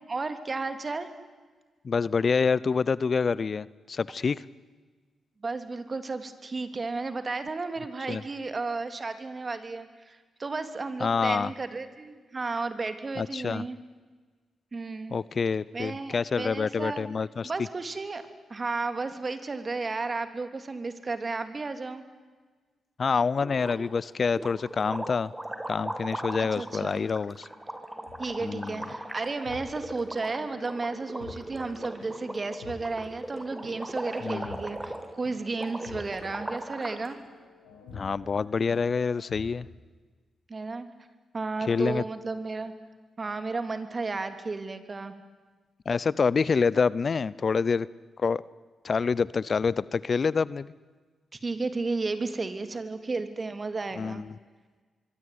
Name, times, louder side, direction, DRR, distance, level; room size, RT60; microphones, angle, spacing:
voice 1, 0.1-1.1 5.4-13.8 14.7-15.2 15.7-17.1 17.4-18.2 18.5-22.0 26.4-27.0 28.2-37.2 40.5-40.9 41.3-42.7 43.2-45.1 51.4-54.2, right 3 dB, 40° right, 9 dB, 3.3 m, -33 dB
voice 2, 1.8-4.4 8.1-8.2 11.0-11.5 13.2-13.6 15.1-17.5 23.0-25.3 25.7-27.5 28.4-28.8 34.2-34.5 37.9-39.7 41.7-42.0 45.9-47.9 48.2-48.4 48.8-50.7 54.0-54.2, left 5 dB, 50° left, 21 dB, 0.7 m, -27 dB
sound 1, 23.4-24.0 24.3-37.1, right 1 dB, 15° right, 5.0 m, -39 dB
sound 2, 28.1-39.5, left 4 dB, 85° left, 6.0 m, -49 dB
25.5 x 23.5 x 9.7 m, 1.4 s
hypercardioid pair, 40°, 0 cm